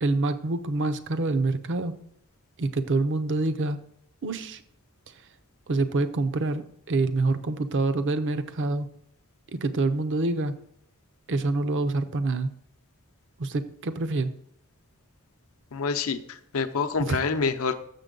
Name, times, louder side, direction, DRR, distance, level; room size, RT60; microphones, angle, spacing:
voice 1, 0.0-1.9 2.6-3.8 4.2-4.6 5.7-8.9 9.6-10.5 11.3-12.5 13.4-14.4 17.1-17.2, right 3 dB, 55° right, 10 dB, 0.6 m, -26 dB
voice 2, 15.7-17.7, left 5 dB, 65° left, 8 dB, 0.6 m, -27 dB
6.8 x 6.7 x 3.8 m, 0.70 s
head